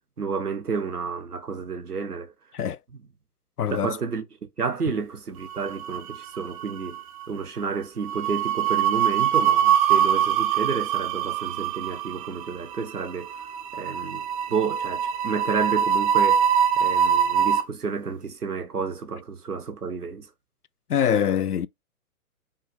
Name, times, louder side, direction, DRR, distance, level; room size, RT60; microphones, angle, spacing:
voice 1, 0.2-2.3 3.7-4.2 4.6-7.0 7.3-13.3 13.7-14.2 14.5-16.5 16.8-20.3, right 5 dB, 85° right, 1.0 m, -30 dB
voice 2, 3.6-4.0 20.9-21.7, left 8 dB, 85° left, 0.5 m, -24 dB
sound 1, 5.6-6.4 6.6-6.9 8.1-17.6, right 9 dB, 25° right, 0.6 m, -23 dB
5.5 x 2.4 x 3.3 m
figure-of-eight pair, 120°, 45 cm